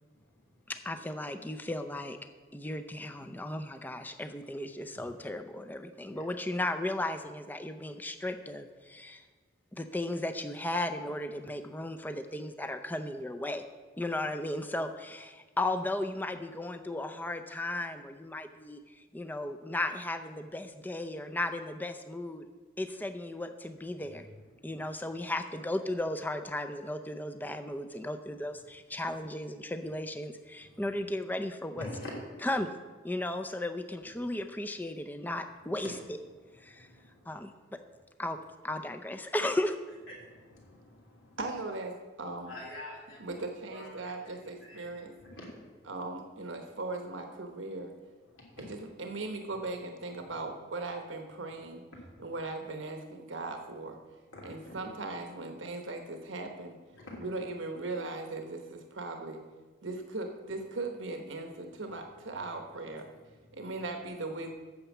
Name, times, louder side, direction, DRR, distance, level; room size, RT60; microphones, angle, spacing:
voice 1, 0.1-0.7 4.9-5.1 6.1-6.3 14.0-14.2 23.7-24.8 27.3-27.4 28.9-29.2 29.8-29.9 30.6-31.0 31.7-32.5 34.2-34.4 35.4-37.5 37.8-37.9 40.1-41.4 42.3-43.4 43.7-46.0 46.5-46.6 48.2-49.2 49.5-49.7 50.1-50.4 51.5-51.6 51.9-52.3 54.3-54.8 56.9-57.2 61.6-62.5 62.8-63.8, left 1 dB, 90° left, -2 dB, 3.1 m, -49 dB
voice 2, 0.7-2.2 2.5-9.2 9.7-13.6 14.0-18.8 19.1-22.4 22.8-24.3 24.6-31.8 32.5-32.8 33.0-35.9 36.6-36.9 37.3-37.8 38.2-38.4 38.6-39.8, left 1 dB, 10° left, 7 dB, 0.5 m, -35 dB
voice 3, 41.4-42.5 43.2-45.1 45.9-47.9 48.6-51.8 52.2-54.0 54.4-56.8 57.2-59.4 59.8-63.1 63.5-64.5, right 2 dB, 75° right, 4 dB, 1.1 m, -38 dB
8.8 x 6.9 x 7.2 m, 1.4 s
head